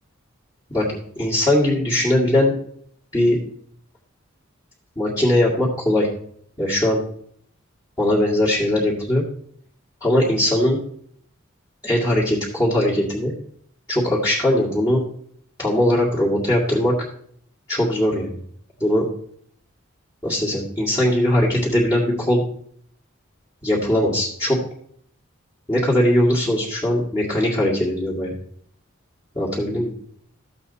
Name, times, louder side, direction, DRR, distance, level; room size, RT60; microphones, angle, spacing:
voice 1, 1.2-2.5 3.1-3.4 5.0-6.1 6.6-7.0 8.0-9.2 10.0-10.8 11.8-13.3 13.9-15.0 15.6-17.0 17.7-18.3 18.8-19.0 20.2-22.4 23.6-24.6 25.7-28.3 29.3-29.9, left 1 dB, 20° left, -9 dB, 2.2 m, -20 dB
13.5 x 7.7 x 4.2 m, 0.63 s
head